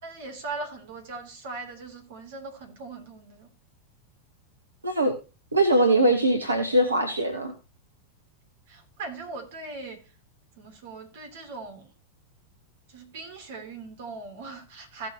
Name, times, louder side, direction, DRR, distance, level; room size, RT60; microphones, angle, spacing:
voice 1, 0.0-3.5 8.7-10.0 10.6-11.9 12.9-15.1, right 3 dB, 55° right, 2.9 m, -39 dB
voice 2, 5.5-7.5, right 1 dB, 80° right, 1.2 m, -21 dB
16.0 x 6.8 x 2.9 m
figure-of-eight pair, 90°, 0 cm